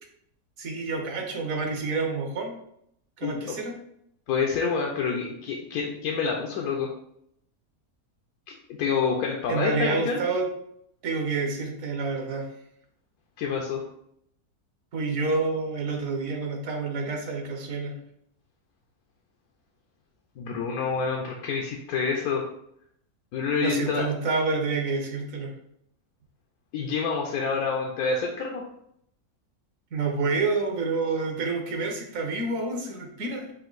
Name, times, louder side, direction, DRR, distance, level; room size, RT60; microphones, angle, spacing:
voice 1, 0.6-2.5 3.2-3.8 9.5-10.5 11.0-12.5 14.9-18.0 23.6-25.5 29.9-33.5, right 4 dB, 65° right, 2 dB, 1.3 m, -28 dB
voice 2, 3.2-3.6 4.3-6.9 8.7-10.2 13.4-13.8 20.4-22.5 23.3-24.1 26.7-28.6, left 5 dB, 85° left, -1 dB, 1.1 m, -27 dB
5.1 x 2.7 x 3.9 m, 0.73 s
omnidirectional pair, 1.6 m